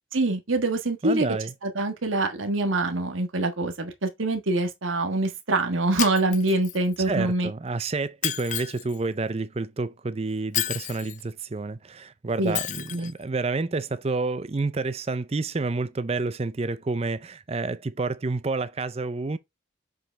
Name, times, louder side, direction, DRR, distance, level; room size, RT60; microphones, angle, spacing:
voice 1, 0.1-1.3 1.6-7.5 12.4-12.6 12.9-13.1, right 2 dB, 75° right, 1.4 m, -25 dB
voice 2, 1.0-1.5 7.1-19.4, right 3 dB, 30° right, 0.5 m, -29 dB
Shatter, 6.0-7.0 8.2-9.0 10.5-11.2 12.5-13.1, left 12 dB, 35° left, 0.4 m, -31 dB
7.6 x 5.0 x 3.3 m
head